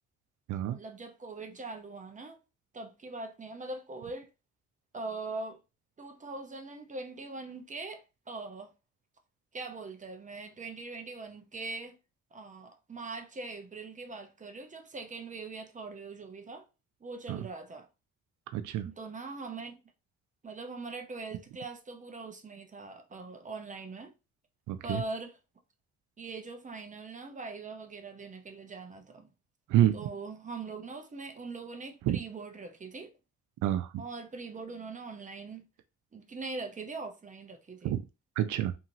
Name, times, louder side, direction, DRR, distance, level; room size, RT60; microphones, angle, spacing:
voice 1, 0.7-2.4 2.7-4.3 4.9-5.6 6.0-8.7 9.5-12.0 12.3-16.7 17.0-17.9 18.8-19.8 20.4-24.1 24.8-25.4 26.2-29.3 29.9-33.1 34.0-35.6 36.1-37.9, right 3 dB, 25° right, 0.7 m, -42 dB
voice 2, 18.5-18.9 24.7-25.0 29.7-30.0 32.1-32.2 33.6-34.0 37.8-38.0 38.4-38.7, right 12 dB, 75° right, 0.5 m, -28 dB
2.8 x 2.7 x 2.7 m
cardioid pair, 90°, 30 cm